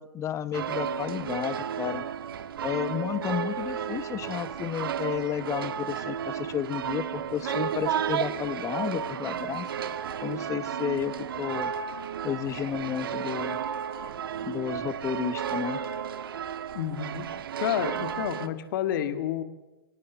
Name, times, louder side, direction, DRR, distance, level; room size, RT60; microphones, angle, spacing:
voice 1, 0.0-2.0 2.6-9.7 10.2-11.7 12.2-13.6 14.4-15.8, left 10 dB, 25° left, 15 dB, 0.9 m, -32 dB
sound 1, 0.5-18.5, right 8 dB, 75° right, 1.3 m, -33 dB
voice 2, 16.7-17.3 17.6-19.4, left 10 dB, 60° left, 9 dB, 2.0 m, -29 dB
24.5 x 18.5 x 6.9 m, 1.1 s
hypercardioid pair, 115°, 12 cm